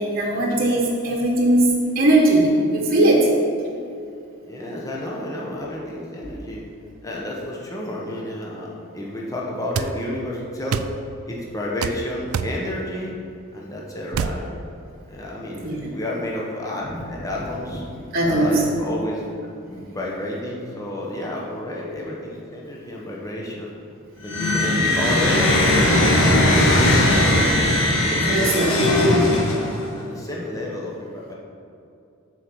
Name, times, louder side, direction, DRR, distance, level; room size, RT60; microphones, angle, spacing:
voice 1, 0.0-3.3 15.6-15.9 16.9-17.0 17.4-17.5 17.7-17.8 18.1-18.7 28.3-29.2, right 1 dB, 45° right, -1 dB, 1.1 m, -19 dB
voice 2, 4.5-6.6 7.0-10.9 11.3-13.1 13.5-14.5 15.1-17.8 18.2-19.2 19.7-23.7 24.2-27.5 27.8-31.3, left 1 dB, 15° left, -3 dB, 1.1 m, -31 dB
sound 1, 9.7-9.9 10.7-10.9 11.8-12.0 12.3-12.6 14.1-14.4, right 6 dB, 75° right, 0.4 m, -25 dB
sound 2, 24.2-29.9, left 1 dB, 80° left, 1.7 m, -18 dB
7.9 x 4.7 x 7.0 m, 2.6 s
head